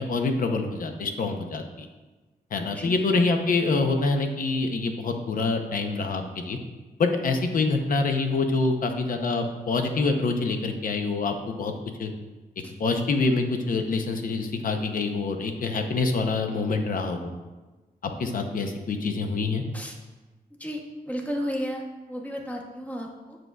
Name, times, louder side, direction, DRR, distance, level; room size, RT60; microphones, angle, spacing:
voice 1, 0.0-1.9 2.5-6.6 7.0-11.7 12.0-12.1 12.8-17.3 18.0-19.6, left 3 dB, 60° left, 5 dB, 0.6 m, -26 dB
voice 2, 20.6-23.4, equal, 10° left, 0 dB, 0.8 m, -33 dB
7.5 x 6.1 x 2.3 m, 1.2 s
wide cardioid pair, 145°, 16 cm